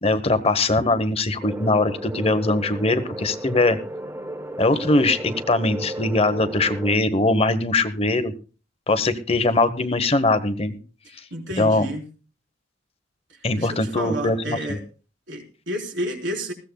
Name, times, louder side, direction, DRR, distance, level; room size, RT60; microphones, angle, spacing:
voice 1, 0.0-3.8 4.6-8.3 8.9-10.8 11.6-11.9 13.4-14.8, left 2 dB, 30° left, 11 dB, 0.9 m, -21 dB
sound 1, 1.4-7.0, right 1 dB, 15° right, 0.6 m, -34 dB
voice 2, 11.3-12.0 13.3-14.8 15.3-16.5, right 1 dB, 70° right, 1 dB, 3.9 m, -31 dB
20.5 x 16.0 x 2.2 m, 0.35 s
head